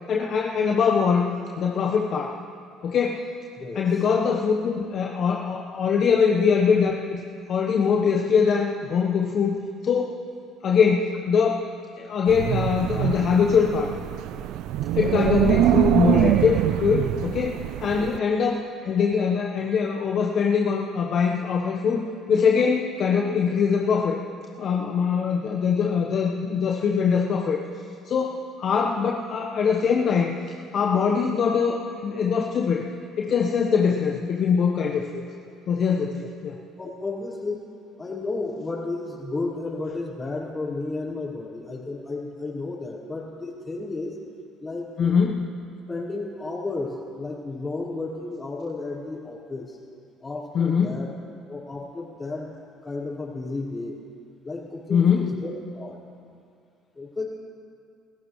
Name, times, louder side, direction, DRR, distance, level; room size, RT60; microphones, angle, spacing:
voice 1, 0.1-2.4 2.8-3.2 3.7-7.2 7.5-9.6 9.8-10.1 10.6-11.6 12.0-13.9 14.9-22.0 22.3-24.2 24.6-27.6 28.0-30.4 30.7-32.9 33.2-35.2 35.7-36.5 45.0-45.4 50.5-51.0 54.9-55.3, left 6 dB, 55° left, 0 dB, 1.1 m, -22 dB
voice 2, 3.6-3.9 17.9-18.1 36.8-37.6 38.0-44.2 44.6-45.2 45.9-49.8 50.2-51.1 51.5-52.5 52.8-54.0 54.4-56.0 56.9-57.2, left 3 dB, 25° left, -5 dB, 4.8 m, -32 dB
Wind, 12.3-18.2, right 13 dB, 70° right, 0.4 m, -24 dB
28.0 x 15.0 x 3.2 m, 2.4 s
hypercardioid pair, 70°, 0 cm